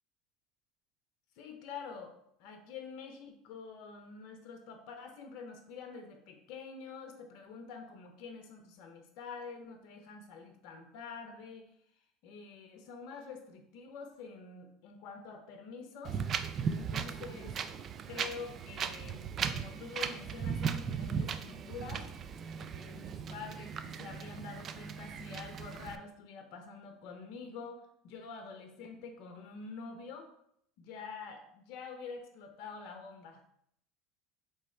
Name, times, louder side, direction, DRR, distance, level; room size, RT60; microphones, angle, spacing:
voice 1, 1.4-11.7 12.2-16.2 16.7-17.6 18.0-22.1 22.6-30.3 30.8-33.4, left 5 dB, 65° left, 5 dB, 0.6 m, -47 dB
Wind, 16.0-26.0, right 6 dB, 40° right, 0.3 m, -37 dB
3.4 x 3.2 x 4.2 m, 0.70 s
supercardioid pair, 90°, 0 cm